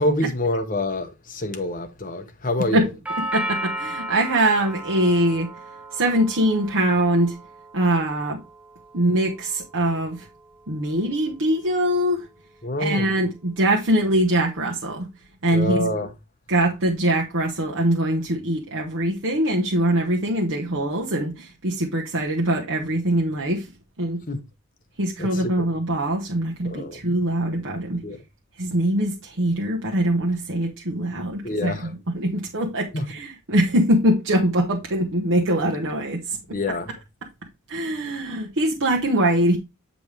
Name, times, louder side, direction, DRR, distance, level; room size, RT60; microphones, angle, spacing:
voice 1, 0.0-2.8 12.6-13.1 15.5-16.1 24.3-24.4 25.2-25.7 26.6-27.0 28.0-28.2 31.4-31.9 32.9-33.1 36.5-36.9, left 1 dB, 40° left, 1.1 m, -26 dB
Doorbell, 3.0-11.1, right 1 dB, 5° right, 0.5 m, -35 dB
voice 2, 3.3-5.5 5.9-7.4 7.7-8.4 8.9-10.3 10.7-12.3 12.8-15.1 15.4-15.9 16.5-23.7 24.0-24.2 25.0-28.0 28.6-36.4 37.7-39.6, right 1 dB, 65° right, 1.1 m, -23 dB
9.0 x 5.2 x 3.3 m
head